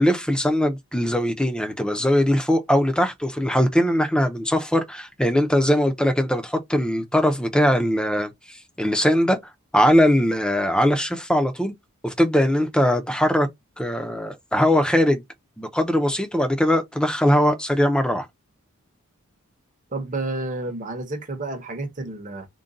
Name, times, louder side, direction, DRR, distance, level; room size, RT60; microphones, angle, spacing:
voice 1, 0.0-9.4 9.7-11.7 12.0-13.5 13.8-15.2 15.6-18.3, equal, 5° left, 0.5 m, -21 dB
voice 2, 19.9-22.5, right 2 dB, 35° right, 0.8 m, -30 dB
3.7 x 2.2 x 3.8 m
head